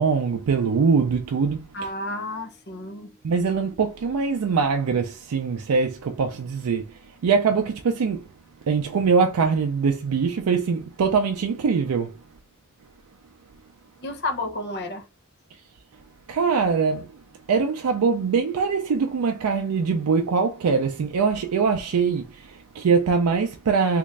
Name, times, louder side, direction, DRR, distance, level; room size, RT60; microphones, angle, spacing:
voice 1, 0.0-1.7 3.2-6.9 7.2-8.2 8.7-12.1 16.3-17.1 17.5-24.0, right 5 dB, 85° right, 0.4 m, -22 dB
voice 2, 1.7-3.2 14.0-15.0, left 2 dB, 50° left, 0.7 m, -31 dB
3.2 x 2.5 x 3.2 m
head